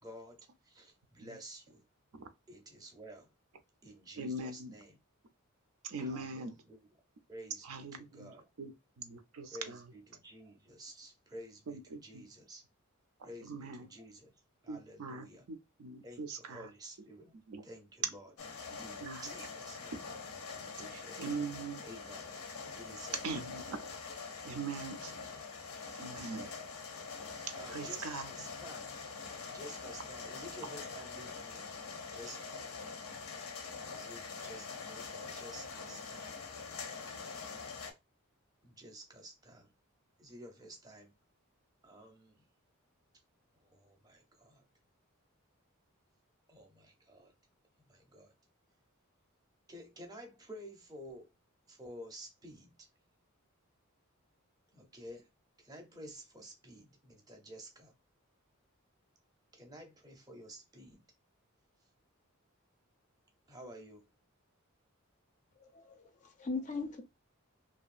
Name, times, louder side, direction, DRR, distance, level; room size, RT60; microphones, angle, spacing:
voice 1, 0.0-1.8 2.5-3.3 3.8-5.0 6.0-6.8 7.3-8.4 9.5-12.6 13.2-14.3 14.6-15.4 16.0-17.3 17.6-18.3 18.8-20.0 20.8-21.2 21.8-22.2 22.7-23.4 26.1-26.6 27.5-28.9 29.5-31.7 32.1-32.6 33.6-36.3 38.6-39.7 40.2-41.1 41.8-42.4 43.6-44.6 46.5-47.3 47.9-48.3 49.7-51.3 51.7-52.7 54.7-55.3 55.6-57.9 59.5-61.0 63.5-64.1, equal, 20° right, 0.6 m, -51 dB
voice 2, 4.2-4.7 5.8-6.5 7.6-9.9 11.7-12.3 13.2-13.9 14.7-16.7 17.5-17.6 18.7-19.2 19.8-20.0 20.9-21.8 23.2-23.8 24.4-25.1 25.9-26.5 27.7-28.3, right 3 dB, 80° right, 0.5 m, -42 dB
sound 1, 18.4-37.9, left 5 dB, 90° left, 0.6 m, -44 dB
voice 3, 65.6-67.0, left 3 dB, 35° left, 0.4 m, -39 dB
2.7 x 2.2 x 2.4 m
head